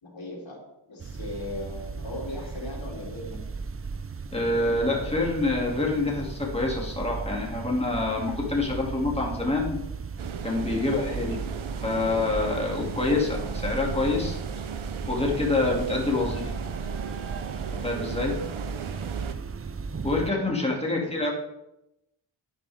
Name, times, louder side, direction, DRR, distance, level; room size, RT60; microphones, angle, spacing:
voice 1, 0.0-3.4 10.7-10.9 20.8-20.9, left 2 dB, 70° left, -2 dB, 3.5 m, -38 dB
sound 1, 1.0-20.3, right 5 dB, 30° right, 0.5 m, -36 dB
voice 2, 4.3-9.8 10.4-11.4 11.8-14.4 15.1-16.5 17.8-18.4 20.0-21.3, left 2 dB, 15° left, -2 dB, 2.7 m, -26 dB
sound 2, 10.2-19.3, right 7 dB, 85° right, 0.9 m, -37 dB
11.0 x 10.0 x 3.7 m, 0.88 s
wide cardioid pair, 110°, 47 cm